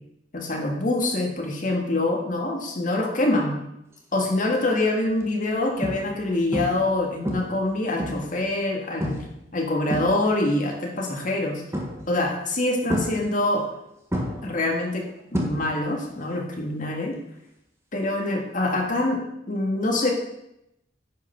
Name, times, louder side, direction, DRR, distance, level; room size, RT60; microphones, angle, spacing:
voice 1, 0.3-3.6 4.1-9.2 9.5-11.6 12.1-13.7 14.4-15.1 15.3-17.1 17.9-19.2 19.5-20.1, left 2 dB, 50° left, 1 dB, 1.9 m, -25 dB
sound 1, 4.2-4.5 5.1-5.2 5.8-6.2 6.5-6.9 7.3-8.4 9.0-9.4 9.7-10.5 11.7-12.2 12.9-13.8 14.1-16.0 16.3-16.7 18.7-18.8, equal, 15° right, 1.6 m, -30 dB
10.0 x 5.7 x 5.8 m, 0.83 s
head